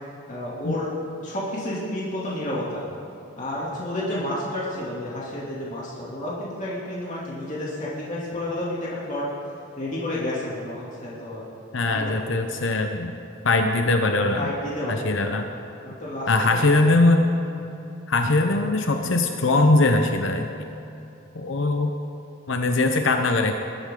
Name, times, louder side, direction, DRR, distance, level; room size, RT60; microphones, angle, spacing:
voice 1, 0.3-0.9 1.2-2.8 3.4-9.3 9.8-11.4 11.9-12.2 14.4-15.0 15.8-17.0, left 1 dB, 40° left, -7 dB, 2.7 m, -30 dB
voice 2, 11.7-13.1 13.4-14.5 14.9-15.5 16.3-17.3 18.1-20.5 21.3-22.0 22.5-23.5, left 2 dB, 70° left, 5 dB, 0.8 m, -21 dB
20.5 x 12.0 x 3.8 m, 2.8 s
head